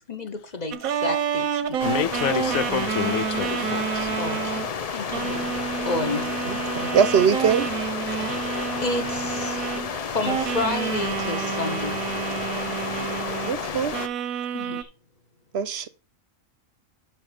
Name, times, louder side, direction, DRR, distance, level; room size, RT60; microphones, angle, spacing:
voice 1, 0.1-1.8 4.2-5.4 5.9-6.3 8.1-8.5 8.8-9.8 10.1-12.0 14.5-14.9, left 2 dB, 35° left, 0.8 m, -31 dB
sound 1, 0.7-4.7 5.1-10.0 10.2-13.6 13.9-14.8, right 9 dB, 90° right, 1.2 m, -29 dB
voice 2, 1.8-4.1, left 11 dB, 80° left, 1.0 m, -28 dB
sound 2, 1.8-14.1, left 6 dB, 55° left, 0.4 m, -31 dB
voice 3, 6.4-7.7 13.5-14.0 15.5-15.9, right 7 dB, 60° right, 0.9 m, -22 dB
5.9 x 5.7 x 6.5 m
omnidirectional pair, 1.4 m